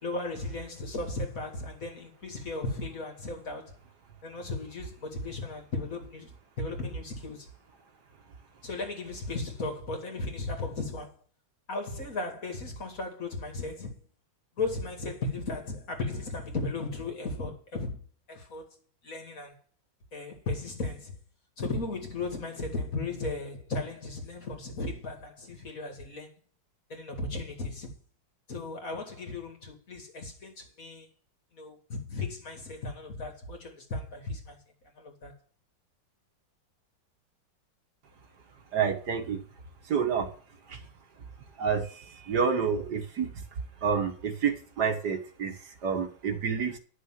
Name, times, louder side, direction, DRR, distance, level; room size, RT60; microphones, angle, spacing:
voice 1, 0.0-3.7 4.2-6.3 6.6-7.5 8.6-11.1 11.7-14.0 14.6-18.0 18.3-18.7 19.0-19.6 20.1-21.1 21.6-26.3 26.9-27.9 28.5-31.1 31.5-34.6 35.0-35.3, left 3 dB, 45° left, 2.5 m, -36 dB
voice 2, 38.7-39.4 39.9-40.3 40.7-40.8 41.6-43.3 43.8-45.5 45.8-46.8, right 6 dB, 60° right, 1.9 m, -28 dB
10.5 x 6.7 x 7.4 m
omnidirectional pair, 2.0 m